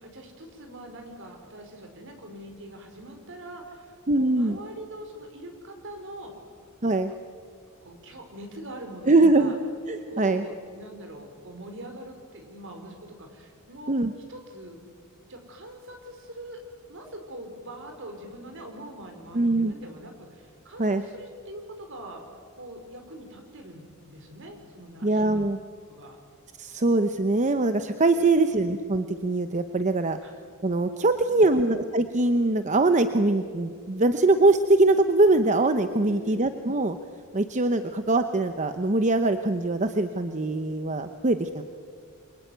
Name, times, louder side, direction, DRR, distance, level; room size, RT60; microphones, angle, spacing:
voice 1, 0.0-6.3 7.8-9.6 10.1-13.9 14.3-14.8 15.3-16.6 16.9-22.2 22.5-25.3 25.9-26.2 28.2-28.7 30.2-30.3 31.3-31.7 36.1-36.5, right 1 dB, 60° right, 5 dB, 4.7 m, -43 dB
voice 2, 4.1-4.6 6.8-7.1 9.1-9.5 9.9-10.4 13.9-14.1 19.3-19.7 20.8-21.0 25.0-25.6 26.6-30.2 30.6-37.0 37.3-41.6, right 2 dB, 35° right, 9 dB, 0.9 m, -22 dB
27.5 x 23.5 x 9.3 m, 2.1 s
head